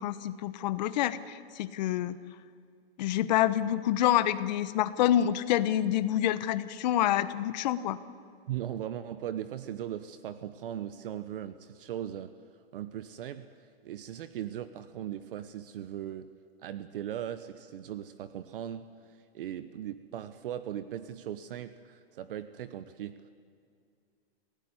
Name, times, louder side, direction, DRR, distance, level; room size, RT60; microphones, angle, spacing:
voice 1, 0.0-2.2 3.0-8.0, left 12 dB, 45° left, 13 dB, 1.1 m, -27 dB
voice 2, 8.5-12.3 12.7-16.3 16.6-23.2, right 10 dB, 60° right, 12 dB, 1.1 m, -39 dB
26.5 x 16.5 x 9.7 m, 2.3 s
hypercardioid pair, 165°, 32 cm